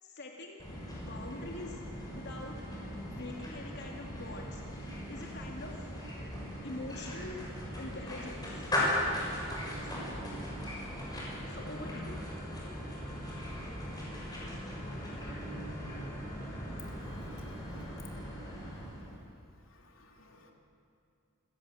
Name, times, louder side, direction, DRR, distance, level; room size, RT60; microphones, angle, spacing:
voice 1, 0.0-0.7 0.9-1.8 2.1-5.9 6.6-7.5 7.8-8.7 9.7-10.1 11.5-12.2, left 2 dB, 55° left, 0 dB, 2.4 m, -45 dB
sound 1, 0.6-19.2, left 1 dB, 20° left, 6.5 m, -38 dB
voice 2, 16.8-18.3 19.1-19.2 19.7-20.5, left 4 dB, 85° left, 2 dB, 3.0 m, -56 dB
27.5 x 17.0 x 7.7 m, 2.5 s
head